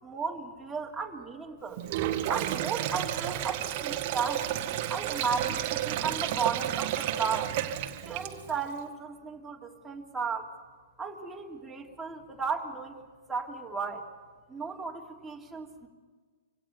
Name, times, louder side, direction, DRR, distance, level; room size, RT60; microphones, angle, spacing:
voice 1, 0.0-1.9 2.3-4.5 4.9-7.5 8.0-10.5 11.0-13.0 13.3-14.0 14.5-15.9, right 5 dB, 10° right, -2 dB, 3.4 m, -34 dB
Sink (filling or washing), 1.8-8.6, right 12 dB, 50° right, 1.6 m, -31 dB
26.0 x 17.5 x 7.1 m, 1.5 s
hypercardioid pair, 120°, 0 cm